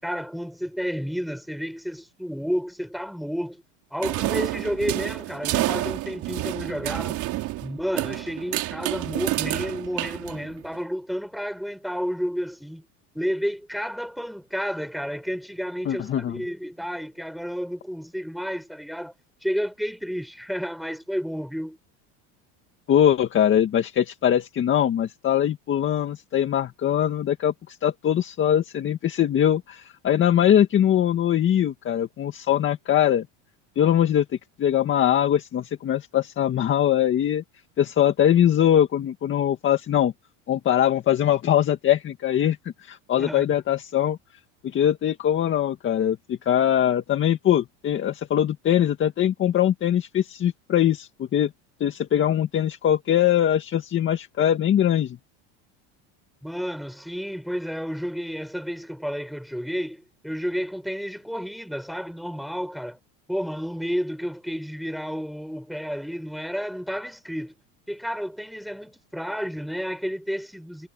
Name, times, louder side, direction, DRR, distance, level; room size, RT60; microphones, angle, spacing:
voice 1, 0.0-3.6 3.9-7.2 7.6-12.9 13.1-19.1 19.4-21.8 43.1-43.4 56.4-63.0 63.3-67.5 67.9-70.9, equal, ahead, 7.5 m, -31 dB
sound 1, 4.0-10.8, right 17 dB, 50° right, 4.2 m, -29 dB
voice 2, 15.9-16.4 22.9-33.3 33.8-34.3 34.6-37.4 37.8-40.1 40.5-44.2 44.6-51.5 51.8-55.2, left 10 dB, 30° left, 2.0 m, -22 dB
supercardioid pair, 135°, 37 cm